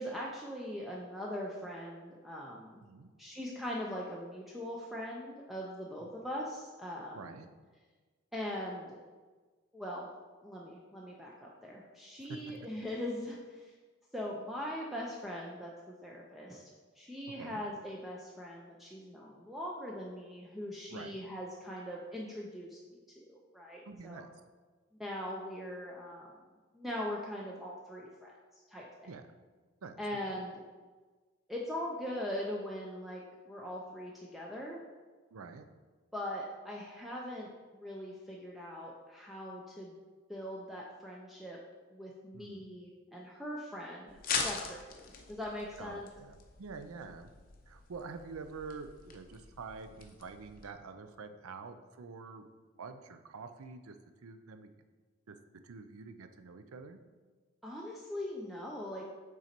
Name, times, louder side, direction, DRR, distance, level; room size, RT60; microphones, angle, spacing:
voice 1, 0.0-2.8 3.2-7.2 8.3-9.0 9.7-10.1 10.4-13.7 14.1-15.7 16.0-16.7 17.0-24.2 25.0-26.3 26.7-29.1 30.0-30.6 31.5-34.8 36.1-40.0 40.3-41.6 41.9-46.1 57.6-59.1, left 1 dB, ahead, -4 dB, 0.4 m, -41 dB
voice 2, 7.1-7.5 12.3-12.4 17.4-17.6 20.9-21.2 23.8-24.3 29.0-29.3 29.8-30.0 30.3-30.4 35.3-35.7 42.3-42.7 45.8-47.3 47.7-52.5 52.8-54.0 54.2-54.7 55.3-55.4 55.6-57.0, right 4 dB, 85° right, 8 dB, 0.5 m, -47 dB
sound 1, 44.1-50.7, left 5 dB, 40° left, 0.6 m, -42 dB
5.9 x 3.9 x 4.3 m, 1.4 s
head